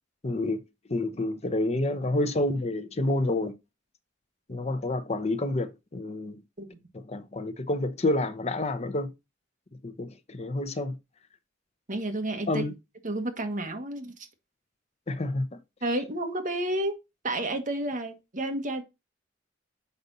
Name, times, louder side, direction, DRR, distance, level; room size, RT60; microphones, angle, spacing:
voice 1, 0.2-0.6 0.9-3.5 4.5-6.4 6.9-9.1 9.8-11.0 12.5-12.7 15.1-15.5, left 2 dB, 35° left, 0.8 m, -29 dB
voice 2, 11.9-12.6 13.0-14.1 15.8-16.9 17.2-18.8, right 1 dB, 45° right, 1.4 m, -30 dB
6.8 x 5.2 x 4.0 m
head